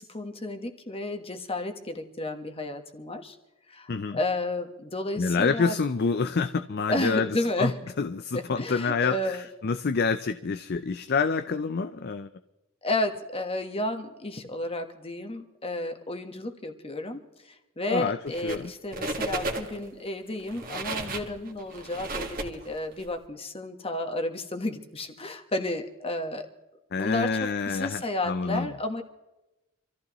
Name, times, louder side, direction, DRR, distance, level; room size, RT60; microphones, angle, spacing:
voice 1, 0.0-3.4 3.7-5.8 6.9-7.8 8.3-9.4 12.8-26.5 27.0-27.4 27.7-29.0, left 2 dB, 25° left, 6 dB, 1.3 m, -32 dB
voice 2, 3.9-4.2 5.2-7.7 8.0-12.3 17.9-18.7 26.9-28.7, left 4 dB, 45° left, 9 dB, 0.5 m, -27 dB
sound 1, 18.3-18.7 18.9-19.9 20.4-23.1, right 2 dB, 40° right, 1.8 m, -34 dB
26.5 x 14.5 x 3.1 m, 1.0 s
head